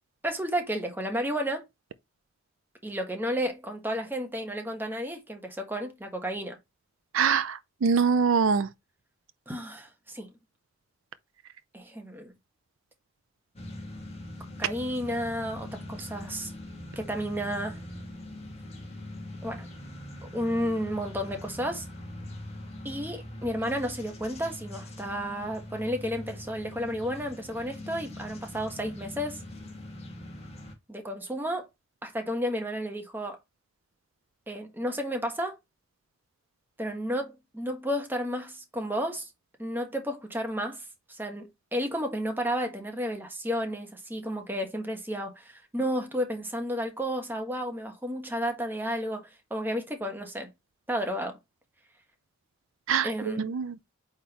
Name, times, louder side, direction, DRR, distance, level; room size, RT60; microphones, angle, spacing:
voice 1, 0.2-1.6 2.8-6.6 9.5-10.3 11.7-12.3 14.6-16.5 16.9-17.8 19.4-19.7 20.3-21.9 22.8-29.4 30.9-31.7 32.0-33.4 34.5-35.5 36.8-39.3 39.6-40.8 41.1-50.5 50.9-51.4 53.0-53.6, equal, 10° right, 1.2 m, -32 dB
voice 2, 7.1-8.7 52.9-53.7, right 6 dB, 75° right, 0.5 m, -24 dB
sound 1, 13.6-30.7, left 1 dB, 30° left, 1.9 m, -42 dB
8.5 x 3.7 x 3.0 m
head